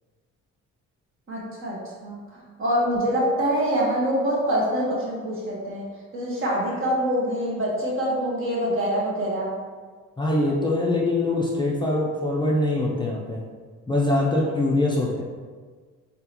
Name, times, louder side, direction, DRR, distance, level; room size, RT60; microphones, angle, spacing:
voice 1, 1.3-2.2 2.6-5.9 6.1-9.5, equal, 45° right, -5 dB, 1.5 m, -25 dB
voice 2, 10.2-13.5 13.9-15.2, left 2 dB, 15° left, -3 dB, 0.5 m, -23 dB
3.8 x 3.7 x 3.0 m, 1.5 s
cardioid pair, 90°, 30 cm